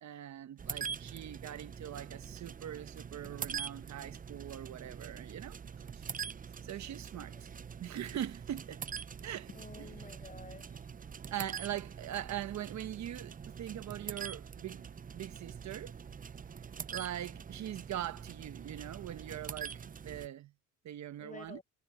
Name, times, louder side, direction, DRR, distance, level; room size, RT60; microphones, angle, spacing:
voice 1, 0.0-6.1 6.6-7.3 7.8-8.8 9.2-9.5 11.3-16.0 16.9-20.5 20.8-21.6, right 11 dB, 65° right, 1.1 m, -42 dB
sound 1, 0.6-20.3, right 7 dB, 30° right, 0.6 m, -44 dB
voice 2, 9.5-10.9 21.2-21.6, left 4 dB, 25° left, 6.4 m, -51 dB
cardioid pair, 90°, 30 cm